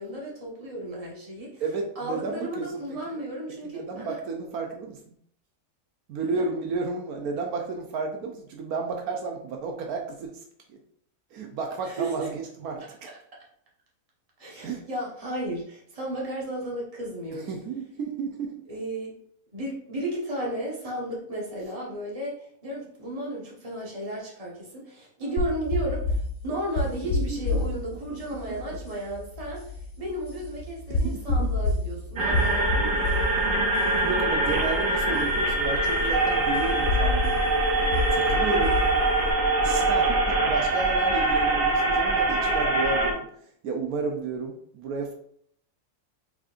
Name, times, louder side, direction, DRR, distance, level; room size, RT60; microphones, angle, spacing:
voice 1, 0.0-1.6 1.9-4.2 6.3-6.5 11.8-12.3 14.4-17.5 18.7-19.2 19.5-33.6, right 1 dB, 25° right, -4 dB, 1.3 m, -34 dB
voice 2, 1.6-2.7 3.6-5.1 6.1-10.4 10.7-10.8 11.3-13.1 14.6-14.9 17.3-18.5 27.2-27.6 28.1-28.6 30.9-31.5 34.0-37.5 37.8-38.8 39.6-43.3 43.6-45.1, right 4 dB, 75° right, 3 dB, 1.1 m, -32 dB
sound 1, 25.4-39.3, left 2 dB, 65° left, 2.0 m, -30 dB
sound 2, 32.2-43.1, right 2 dB, 50° right, 0.7 m, -23 dB
4.6 x 4.3 x 2.5 m, 0.64 s
omnidirectional pair, 1.6 m